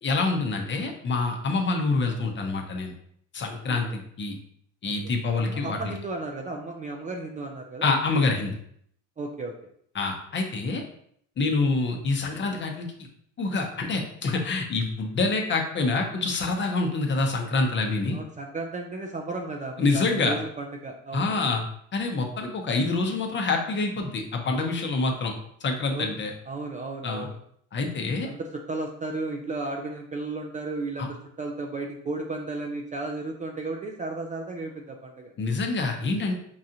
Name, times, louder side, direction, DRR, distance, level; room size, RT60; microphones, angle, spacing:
voice 1, 0.0-2.9 3.3-4.3 4.8-5.8 7.8-8.5 9.9-10.8 11.4-13.1 13.4-18.2 19.8-20.4 21.1-21.6 21.9-25.3 25.6-26.3 27.0-27.3 27.7-28.3 31.0-31.1 35.4-36.3, left 3 dB, 35° left, 2 dB, 0.8 m, -26 dB
voice 2, 4.8-7.9 9.2-9.5 18.1-21.4 25.9-26.1 26.5-27.4 28.2-35.3, right 2 dB, 25° right, 2 dB, 0.4 m, -34 dB
4.7 x 2.4 x 2.8 m, 0.67 s
cardioid pair, 105°, 34 cm